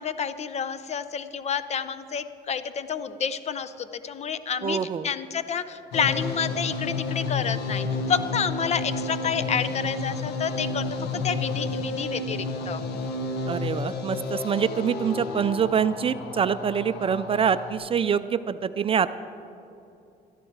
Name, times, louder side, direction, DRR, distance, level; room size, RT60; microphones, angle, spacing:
voice 1, 0.0-12.8, left 7 dB, 40° left, 13 dB, 0.7 m, -29 dB
voice 2, 4.6-5.1 13.5-19.1, right 7 dB, 35° right, 13 dB, 0.4 m, -25 dB
sound 1, 5.9-17.7, left 3 dB, 80° left, 1.2 m, -31 dB
17.0 x 13.0 x 4.7 m, 2.7 s
cardioid pair, 110°, 17 cm